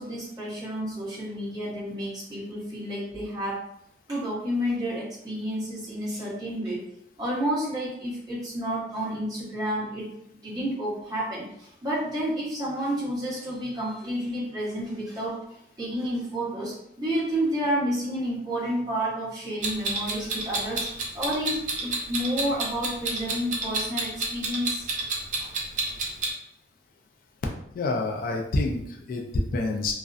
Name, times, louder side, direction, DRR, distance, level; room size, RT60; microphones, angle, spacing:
voice 1, 0.0-3.6 4.1-6.8 7.2-10.1 10.4-15.4 15.8-20.9 21.1-24.8, equal, 20° right, -8 dB, 0.9 m, -30 dB
Clock, 19.6-26.3, right 3 dB, 45° right, 0.5 m, -29 dB
voice 2, 27.7-29.9, left 2 dB, 50° left, 2 dB, 0.3 m, -27 dB
2.4 x 2.1 x 2.4 m, 0.76 s
head